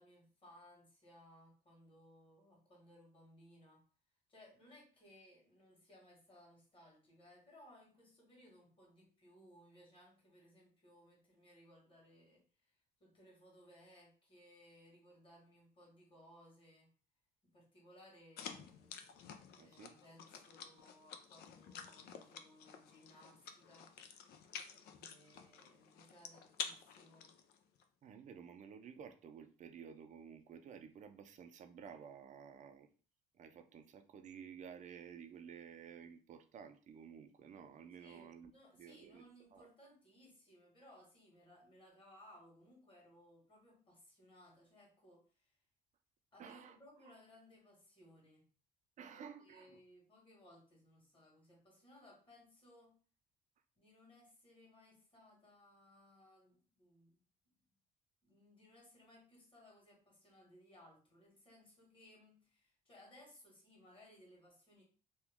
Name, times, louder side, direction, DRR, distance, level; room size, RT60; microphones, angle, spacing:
voice 1, 0.0-3.8 4.3-12.7 13.0-16.9 17.4-18.9 19.6-23.9 24.9-27.3 38.0-45.6 46.3-48.4 49.1-53.0 53.8-57.2 58.2-64.8, left 1 dB, 30° left, -2 dB, 1.7 m, -63 dB
sound 1, 18.4-27.8, left 7 dB, 70° left, 0.5 m, -50 dB
voice 2, 19.6-19.9 28.0-32.9 33.3-39.2 39.5-39.7 46.4-46.8 49.0-49.8, right 7 dB, 45° right, 7 dB, 0.5 m, -53 dB
2.9 x 2.3 x 3.5 m, 0.38 s
cardioid pair, 110°, 17 cm